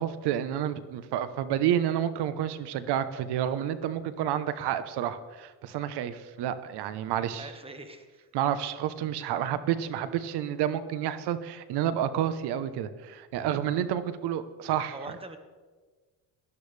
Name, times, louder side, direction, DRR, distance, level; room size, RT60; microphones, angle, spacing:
voice 1, 0.0-7.5 8.3-15.1, right 10 dB, 70° right, 13 dB, 1.0 m, -30 dB
voice 2, 7.3-8.3 14.9-15.4, right 2 dB, 15° right, 7 dB, 1.5 m, -43 dB
18.0 x 11.5 x 3.4 m, 1.4 s
cardioid pair, 100°, 41 cm